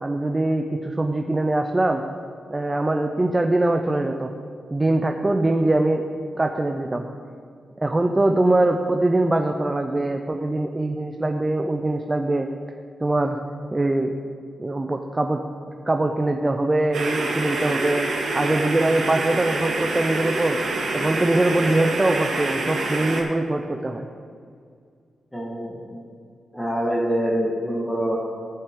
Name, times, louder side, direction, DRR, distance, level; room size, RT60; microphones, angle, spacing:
voice 1, 0.0-2.0 2.5-4.3 4.7-6.0 6.4-7.1 7.8-12.5 13.0-13.4 13.7-14.1 14.6-15.4 15.9-18.1 18.3-20.6 20.9-24.1, right 2 dB, 20° right, 4 dB, 0.5 m, -22 dB
sound 1, 16.9-23.2, right 2 dB, 80° right, 1.8 m, -26 dB
voice 2, 25.3-26.0 26.5-28.2, equal, 5° left, -6 dB, 1.4 m, -25 dB
16.0 x 5.5 x 3.7 m, 2.2 s
wide cardioid pair, 120°, 0 cm